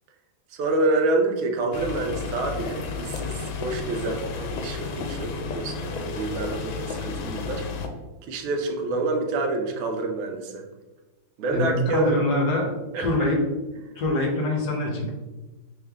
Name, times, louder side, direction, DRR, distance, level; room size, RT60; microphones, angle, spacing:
voice 1, 0.5-7.6 8.3-10.6 11.4-12.2 12.9-13.0, right 2 dB, 85° right, 3 dB, 1.5 m, -27 dB
sound 1, 1.7-7.9, left 5 dB, 80° left, 1.4 m, -32 dB
voice 2, 11.5-12.7 13.0-13.4 14.0-15.1, left 2 dB, 65° left, 0 dB, 1.2 m, -24 dB
3.6 x 3.3 x 3.4 m, 1.2 s
omnidirectional pair, 2.2 m